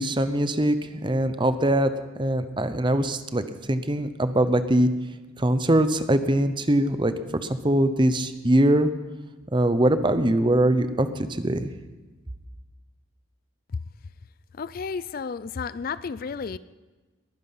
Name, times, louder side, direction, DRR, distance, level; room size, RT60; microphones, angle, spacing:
voice 1, 0.0-1.9 2.2-4.9 5.4-7.1 7.4-8.9 9.5-11.7, right 1 dB, 25° right, 11 dB, 0.8 m, -22 dB
voice 2, 14.5-16.6, left 5 dB, 45° left, 17 dB, 0.4 m, -32 dB
21.5 x 9.8 x 5.7 m, 1.3 s
head